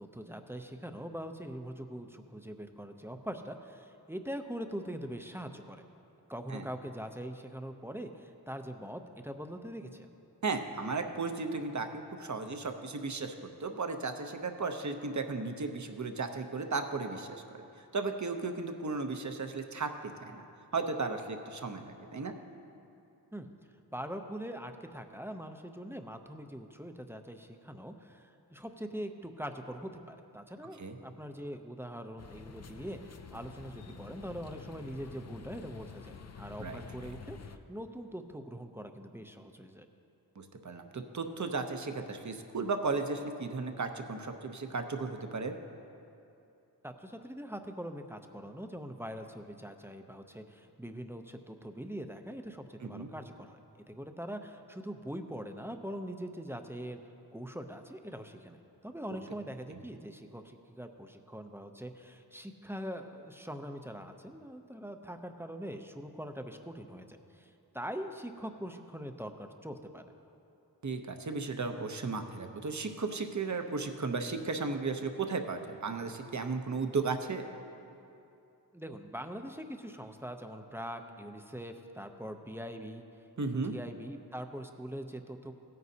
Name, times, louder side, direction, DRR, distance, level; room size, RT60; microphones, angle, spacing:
voice 1, 0.0-5.8 6.3-10.1 23.3-23.5 23.9-39.9 46.8-53.6 53.9-57.0 57.3-58.6 58.8-70.0 78.7-83.0 83.4-85.5, equal, 5° right, 6 dB, 0.5 m, -42 dB
voice 2, 10.4-13.3 13.6-17.6 17.9-20.4 20.7-22.3 30.8-31.0 36.6-36.8 40.4-45.6 52.8-53.1 59.7-59.8 70.8-77.4 83.4-83.7, right 4 dB, 45° right, 6 dB, 0.8 m, -35 dB
sound 1, 32.2-37.6, left 5 dB, 40° left, 0.5 m, -48 dB
16.5 x 9.3 x 2.8 m, 2.7 s
wide cardioid pair, 70°, 41 cm